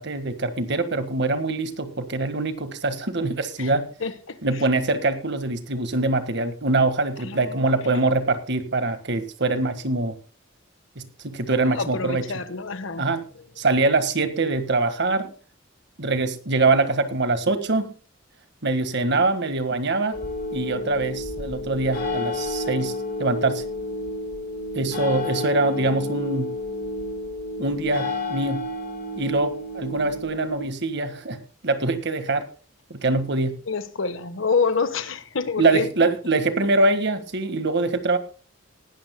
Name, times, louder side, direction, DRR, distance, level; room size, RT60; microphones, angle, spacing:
voice 1, 0.0-3.9 4.4-10.2 10.9-12.2 13.0-13.2 13.6-15.3 16.0-17.9 18.6-20.2 20.5-23.6 24.7-26.5 27.6-28.7 29.2-32.5 32.9-33.6 35.6-38.2, right 3 dB, 55° right, 1.6 m, -24 dB
voice 2, 4.0-4.7 7.2-8.0 11.7-13.2 33.7-36.1, left 4 dB, 75° left, 1.2 m, -28 dB
sound 1, 20.1-30.6, left 1 dB, 50° left, 5.2 m, -30 dB
19.0 x 12.5 x 2.2 m
head